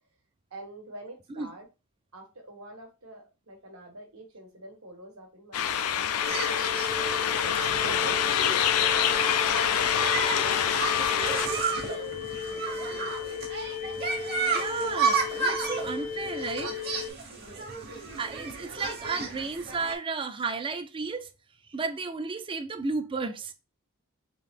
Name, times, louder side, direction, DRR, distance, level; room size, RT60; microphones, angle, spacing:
voice 1, 0.5-1.7 2.1-7.2 7.9-10.7 11.2-13.1 17.3-17.7, equal, 70° right, 1.3 m, -46 dB
sound 1, 5.5-11.5, left 9 dB, 90° left, 0.4 m, -26 dB
sound 2, 6.2-17.1, left 7 dB, 40° left, 0.6 m, -36 dB
sound 3, 6.3-19.9, right 4 dB, 45° right, 1.1 m, -33 dB
voice 2, 14.5-16.8 17.5-17.7 18.2-21.3 21.7-23.5, right 4 dB, 25° right, 0.4 m, -33 dB
3.5 x 2.8 x 3.6 m
head